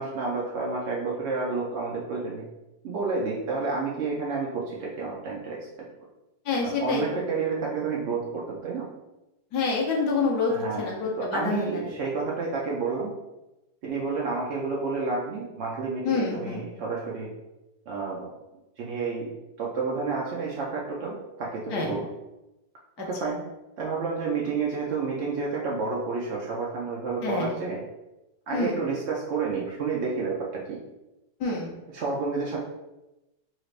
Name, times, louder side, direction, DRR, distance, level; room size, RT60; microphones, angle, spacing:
voice 1, 0.0-2.4 2.8-5.9 6.6-8.9 10.5-10.9 11.2-13.1 13.8-17.3 17.9-18.3 18.8-19.3 19.6-22.1 23.0-23.4 23.8-27.8 28.5-30.8 31.9-32.6, right 4 dB, 80° right, -4 dB, 0.6 m, -30 dB
voice 2, 6.4-7.2 9.5-11.9 16.0-16.6 21.7-21.9 23.0-23.1 27.2-27.6 28.5-28.8 31.4-31.7, left 4 dB, 70° left, -1 dB, 1.3 m, -27 dB
4.2 x 2.4 x 3.1 m, 0.98 s
omnidirectional pair, 1.9 m